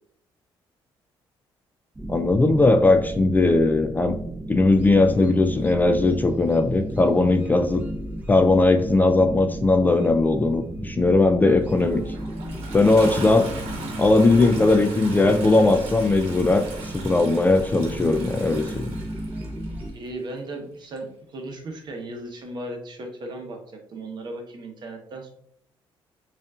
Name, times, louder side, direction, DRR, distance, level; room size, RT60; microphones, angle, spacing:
sound 1, 1.9-19.9, right 1 dB, 20° right, 0.8 m, -34 dB
voice 1, 2.1-4.1 4.5-7.8 8.3-12.1 12.7-13.5 14.0-16.6 16.9-18.9, left 2 dB, 20° left, 7 dB, 0.3 m, -19 dB
Toilet flush, 11.5-19.9 21.0-21.1, right 3 dB, 85° right, 1.0 m, -38 dB
voice 2, 19.9-23.6 23.9-25.3, right 2 dB, 50° right, 3 dB, 1.0 m, -36 dB
5.2 x 2.5 x 2.4 m, 0.69 s
cardioid pair, 95°, 10 cm